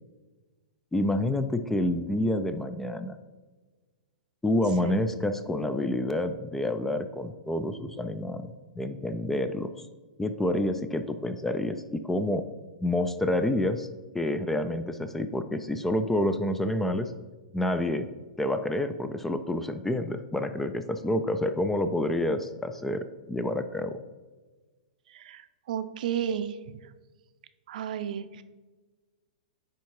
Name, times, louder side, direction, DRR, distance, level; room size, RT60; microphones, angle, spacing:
voice 1, 0.9-3.2 4.4-9.7 10.2-12.4 12.8-13.9 14.1-17.1 17.5-18.1 18.4-24.0, left 1 dB, 5° left, 9 dB, 0.3 m, -28 dB
voice 2, 25.1-26.6 27.7-28.4, right 9 dB, 60° right, 11 dB, 0.6 m, -33 dB
9.3 x 3.5 x 4.6 m, 1.3 s
hypercardioid pair, 140°, 5 cm